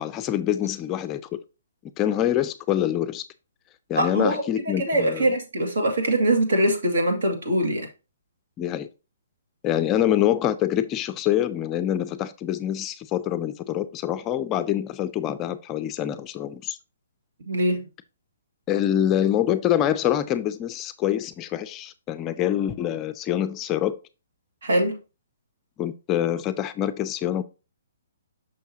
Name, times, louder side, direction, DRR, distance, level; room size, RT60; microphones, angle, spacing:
voice 1, 0.0-1.4 2.0-3.2 3.9-5.3 8.6-8.9 9.6-16.8 18.7-24.0 25.8-27.4, left 11 dB, 20° left, 0.4 m, -25 dB
voice 2, 4.0-7.9 17.5-17.8 24.6-25.0, right 1 dB, 70° right, 2.1 m, -23 dB
6.2 x 5.8 x 2.8 m
hypercardioid pair, 155°, 0 cm